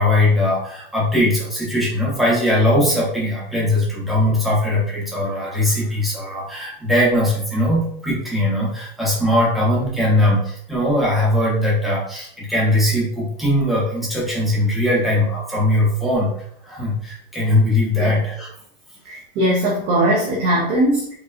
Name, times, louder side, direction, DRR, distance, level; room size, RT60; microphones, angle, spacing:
voice 1, 0.0-16.3 16.6-18.5, left 1 dB, ahead, -7 dB, 0.9 m, -20 dB
voice 2, 19.1-21.1, right 1 dB, 20° right, -2 dB, 0.4 m, -20 dB
4.7 x 2.9 x 2.4 m, 0.66 s
supercardioid pair, 165°, 30 cm